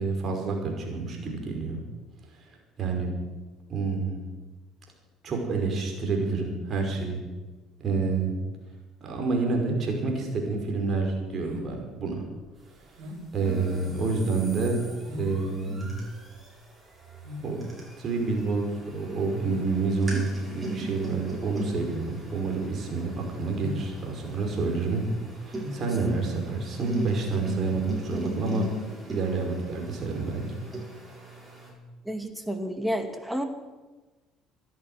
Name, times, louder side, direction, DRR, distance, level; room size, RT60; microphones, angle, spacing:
voice 1, 0.0-1.8 2.4-2.5 2.8-3.1 3.7-4.2 5.2-7.2 7.8-8.4 9.0-12.3 13.3-16.0 17.4-17.6 18.0-25.1 25.5-28.7 29.1-30.7, right 3 dB, 45° right, 2 dB, 5.4 m, -28 dB
sound 1, 11.4-27.2, left 2 dB, 70° right, 4.3 m, -44 dB
sound 2, 13.4-31.7, right 1 dB, 20° right, 7.3 m, -40 dB
voice 2, 32.0-33.4, equal, 5° right, 6 dB, 2.5 m, -30 dB
13.5 x 10.5 x 9.5 m, 1.2 s
hypercardioid pair, 65°, 0 cm